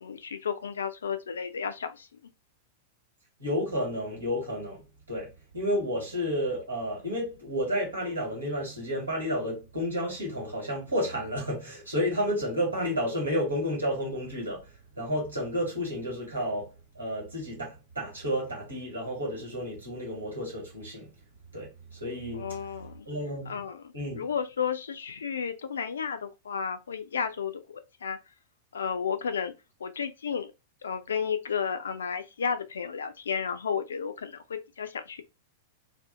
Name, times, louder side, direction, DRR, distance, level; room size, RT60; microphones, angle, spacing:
voice 1, 0.0-2.1 22.3-23.1 23.5-28.2 28.7-29.5 29.8-30.5 30.8-35.2, left 6 dB, 65° left, 0.3 m, -33 dB
voice 2, 3.4-21.1 21.5-22.6 23.0-23.6 23.9-24.2, equal, 75° right, 1.4 m, -31 dB
2.6 x 2.3 x 2.5 m
figure-of-eight pair, 95°, 0 cm